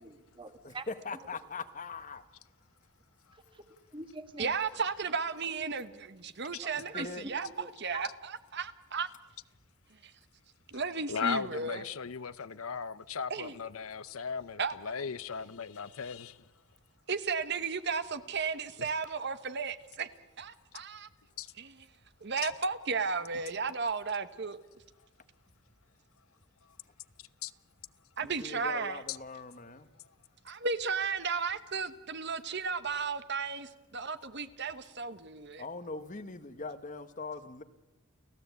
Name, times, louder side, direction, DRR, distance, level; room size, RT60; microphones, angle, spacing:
voice 1, 0.0-0.9 3.9-4.5 6.9-7.7 7.9-8.0, right 2 dB, 20° right, 1.5 m, -44 dB
voice 2, 0.6-2.2 6.9-7.2 28.2-29.9 35.6-37.6, left 3 dB, 35° left, 1.1 m, -41 dB
voice 3, 4.4-9.1 10.0-10.1 10.7-11.8 13.3-13.5 14.6-14.7 17.1-20.1 20.4-21.1 21.6-21.9 22.2-24.6 28.2-29.0 30.4-35.6, right 5 dB, 50° right, 1.1 m, -34 dB
voice 4, 11.1-16.3 18.8-18.9 21.4-21.5 22.4-22.5 27.4-27.5, left 6 dB, 70° left, 0.7 m, -37 dB
30.0 x 15.5 x 8.2 m
head